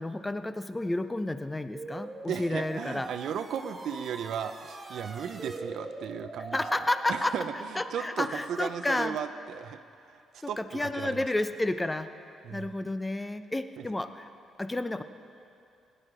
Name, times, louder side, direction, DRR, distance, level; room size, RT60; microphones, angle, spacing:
voice 1, 0.0-3.1 6.5-7.4 7.7-9.2 10.4-12.1 12.5-14.3 14.6-15.0, left 2 dB, 15° left, 10 dB, 0.6 m, -31 dB
sound 1, 1.7-9.2, right 2 dB, 25° right, 1.4 m, -43 dB
voice 2, 2.3-6.6 7.1-9.8 10.1-11.2 12.4-12.7 13.8-13.9, right 8 dB, 70° right, 9 dB, 0.6 m, -36 dB
17.5 x 10.0 x 5.1 m, 2.5 s
cardioid pair, 90°, 0 cm